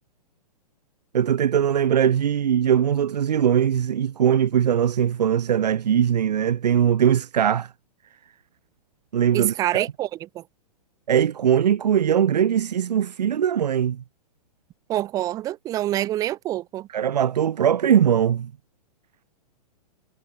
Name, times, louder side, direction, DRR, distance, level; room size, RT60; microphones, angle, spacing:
voice 1, 1.1-7.7 9.1-9.9 11.1-14.0 16.9-18.5, right 9 dB, 80° right, 0.4 m, -21 dB
voice 2, 9.3-10.4 14.9-16.9, right 14 dB, 15° right, 0.4 m, -26 dB
figure-of-eight pair, 115°, 21 cm